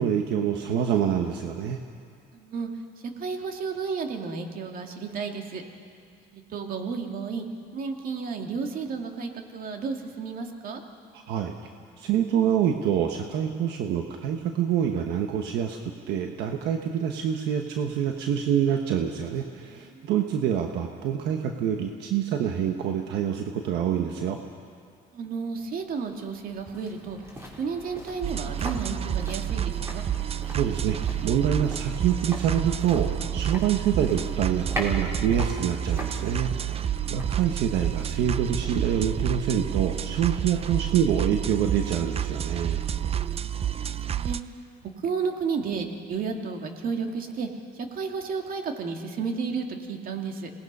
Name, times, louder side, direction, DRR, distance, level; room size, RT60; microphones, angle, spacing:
voice 1, 0.0-1.8 11.3-11.5 12.0-15.8 16.1-24.4 30.5-42.8, right 8 dB, 80° right, 4 dB, 1.3 m, -26 dB
voice 2, 2.3-2.7 3.2-5.6 6.3-7.4 7.7-10.8 19.6-20.1 25.1-27.2 27.6-30.0 36.7-37.1 43.5-44.4 44.8-47.5 47.7-50.5, right 5 dB, 55° right, 3 dB, 2.3 m, -32 dB
sound 1, 25.6-38.7 39.0-39.1, equal, 15° right, 4.1 m, -41 dB
sound 2, 28.2-44.4, right 10 dB, 35° right, 0.6 m, -29 dB
27.0 x 19.0 x 5.6 m, 2.2 s
cardioid pair, 110°, 17 cm